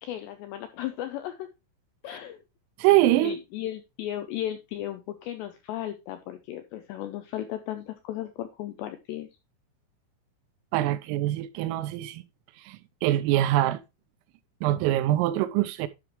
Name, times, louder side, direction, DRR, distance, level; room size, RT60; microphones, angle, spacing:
voice 1, 0.0-1.5 2.0-2.4 3.2-9.3, left 12 dB, 90° left, 2.5 m, -35 dB
voice 2, 2.8-3.4 10.7-12.2 12.6-13.8 14.6-15.9, right 14 dB, 85° right, 3.4 m, -24 dB
12.0 x 5.9 x 3.1 m
omnidirectional pair, 5.8 m